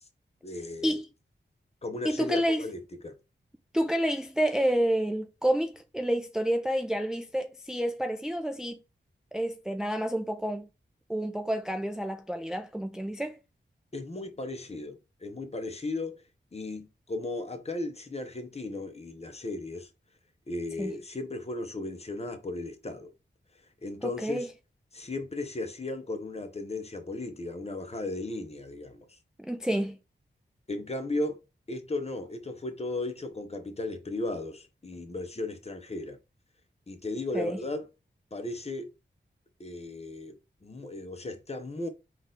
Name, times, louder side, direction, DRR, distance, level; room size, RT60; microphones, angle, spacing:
voice 1, 0.4-1.0 1.8-3.2 13.9-16.2 16.5-19.9 20.5-23.1 23.8-24.5 24.9-29.1 30.7-31.4 31.7-36.2 36.9-37.9 38.3-38.9 39.6-40.4 40.6-41.9, left 2 dB, 30° left, 0.7 m, -35 dB
voice 2, 2.0-2.7 3.7-8.8 9.3-10.7 11.1-13.4 20.8-20.9 24.0-24.5 29.4-30.0 37.3-37.6, equal, 5° right, 0.4 m, -29 dB
3.8 x 2.5 x 3.9 m
wide cardioid pair, 65°, 20 cm